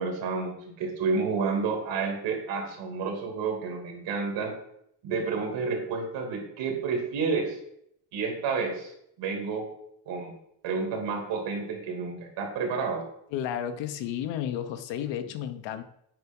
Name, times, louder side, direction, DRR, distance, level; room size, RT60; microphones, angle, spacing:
voice 1, 0.0-4.5 5.0-7.6 8.1-8.9 9.2-9.7 10.1-10.3 10.6-13.0, right 4 dB, 85° right, 2 dB, 2.8 m, -30 dB
voice 2, 13.3-15.8, left 10 dB, 85° left, 9 dB, 1.0 m, -32 dB
9.2 x 4.8 x 5.3 m, 0.73 s
cardioid pair, 160°, 43 cm